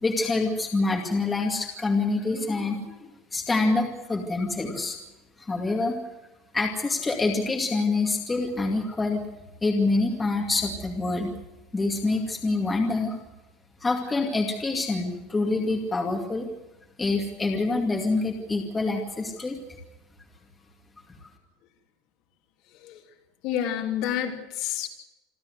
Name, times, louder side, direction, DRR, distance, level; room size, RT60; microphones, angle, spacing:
voice 1, 0.0-5.0 5.4-6.0 6.5-9.2 9.6-11.3 11.7-13.2 13.8-16.5 17.0-19.6 21.2-21.3, left 3 dB, 10° left, 1 dB, 2.3 m, -26 dB
voice 2, 23.4-24.9, left 10 dB, 45° left, 3 dB, 2.9 m, -29 dB
27.0 x 13.0 x 8.0 m, 0.99 s
cardioid pair, 175°, 0 cm